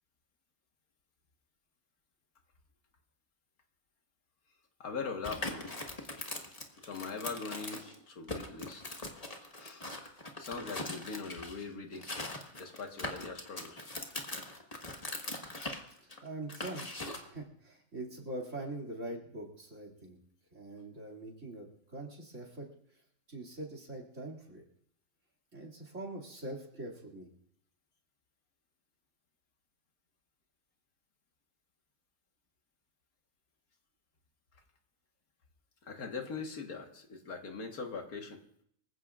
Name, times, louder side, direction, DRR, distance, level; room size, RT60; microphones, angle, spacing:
voice 1, 4.8-5.7 6.8-9.0 9.6-9.8 10.4-13.8 35.8-38.4, left 4 dB, 85° left, 3 dB, 2.0 m, -41 dB
sound 1, 5.2-8.0 8.3-11.6 11.9-17.3, left 2 dB, 25° left, 1.6 m, -41 dB
voice 2, 16.0-16.9 17.1-20.2 20.5-21.7 21.9-22.7 23.3-24.6 25.5-27.3, right 1 dB, 55° right, 1 dB, 3.0 m, -43 dB
25.0 x 15.5 x 2.5 m, 0.69 s
omnidirectional pair, 1.5 m